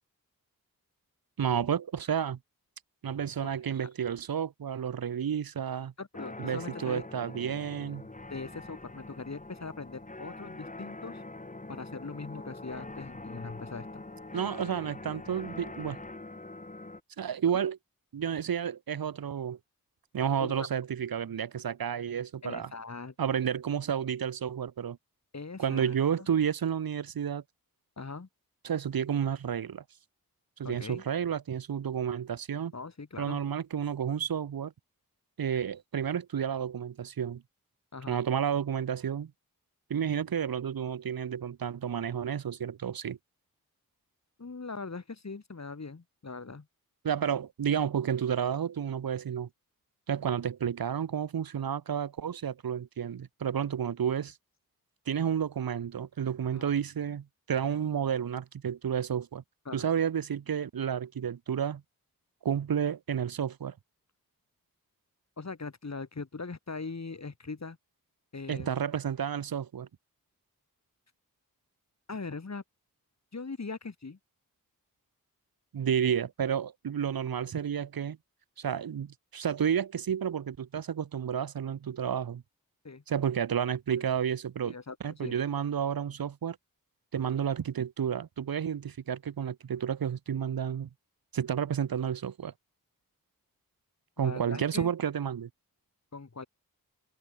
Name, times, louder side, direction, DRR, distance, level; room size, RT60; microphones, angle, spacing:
voice 1, 1.4-2.4 3.0-5.9 6.4-8.1 14.3-16.0 17.2-17.8 18.1-19.6 20.1-22.7 23.2-25.0 25.6-27.4 28.6-29.8 30.6-32.7 33.2-34.7 35.4-37.4 38.1-39.3 39.9-43.2 47.0-49.5 50.1-54.3 55.1-59.4 59.7-61.8 62.4-63.7 68.5-69.9 75.7-78.2 78.6-82.4 83.1-84.7 85.0-86.6 87.1-90.9 91.3-92.5 94.2-95.5, right 8 dB, 85° right, 0.8 m, -31 dB
voice 2, 6.0-7.0 8.3-11.2 11.7-14.0 20.4-20.7 22.4-23.1 25.3-26.0 28.0-28.3 30.6-31.0 32.7-33.4 37.9-38.2 44.4-46.7 56.5-56.7 59.7-59.8 65.4-67.8 68.3-68.8 72.1-72.6 73.3-74.2 82.8-83.0 84.6-85.4 94.2-94.9 96.1-96.5, left 4 dB, 50° left, 2.2 m, -41 dB
sound 1, 6.1-17.0, left 2 dB, 20° left, 1.4 m, -44 dB
cardioid pair, 45°, 35 cm